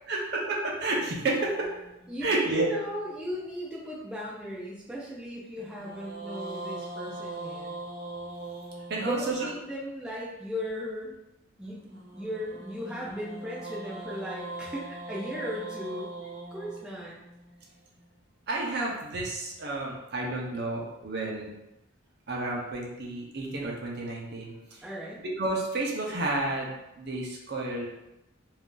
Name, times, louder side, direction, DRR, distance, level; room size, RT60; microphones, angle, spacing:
voice 1, 0.1-1.7 2.2-2.7 8.9-9.5 18.5-21.5 22.3-24.8 25.4-27.9, right 2 dB, 50° right, -2 dB, 0.6 m, -31 dB
sound 1, 0.9-3.3 5.6-9.7 11.9-18.1, right 2 dB, 85° right, 1.0 m, -42 dB
voice 2, 2.1-7.7 9.0-11.1 11.6-16.1 16.5-17.2 24.8-25.2, equal, 5° right, -6 dB, 0.4 m, -37 dB
2.6 x 2.4 x 3.7 m, 0.92 s
head